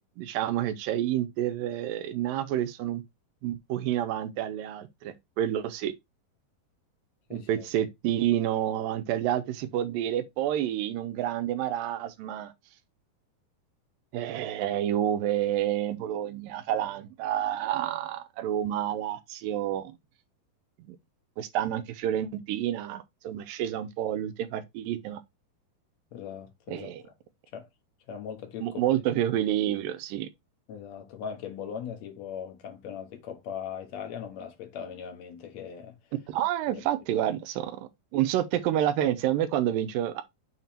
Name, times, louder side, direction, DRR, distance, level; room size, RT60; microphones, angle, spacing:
voice 1, 0.0-3.0 3.4-5.9 7.3-12.5 14.1-20.0 20.9-21.0 21.4-25.2 26.7-27.0 28.6-30.3 36.3-40.2, right 11 dB, 80° right, 2.2 m, -29 dB
voice 2, 7.3-7.7 26.1-27.1 27.5-27.7 28.1-28.8 30.7-36.0 36.7-36.9, left 8 dB, 60° left, 2.0 m, -39 dB
7.2 x 3.4 x 4.3 m
omnidirectional pair, 4.4 m